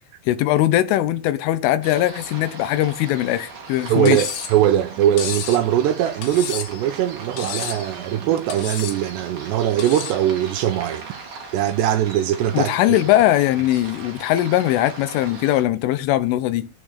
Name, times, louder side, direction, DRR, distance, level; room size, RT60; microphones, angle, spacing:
voice 1, 0.3-4.2 12.5-16.7, left 14 dB, 80° left, 3.5 m, -20 dB
sound 1, 1.8-15.6, right 4 dB, 50° right, 5.5 m, -39 dB
voice 2, 3.9-11.1 11.5-12.8, right 11 dB, 80° right, 2.7 m, -21 dB
Cutlery silverware, 4.1-4.6 5.2-5.6 6.2-6.8 7.4-7.9 8.5-9.0 9.8-10.2, left 9 dB, 65° left, 3.4 m, -31 dB
18.0 x 6.0 x 6.6 m
omnidirectional pair, 5.6 m